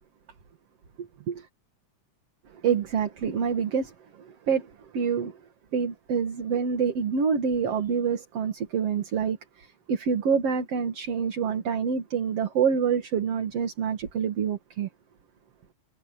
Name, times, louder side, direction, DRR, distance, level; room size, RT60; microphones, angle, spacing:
voice 1, 2.6-3.9 4.5-4.7 4.9-5.3 5.7-9.4 9.9-14.9, right 6 dB, 50° right, 2.8 m, -26 dB
omnidirectional pair, 3.6 m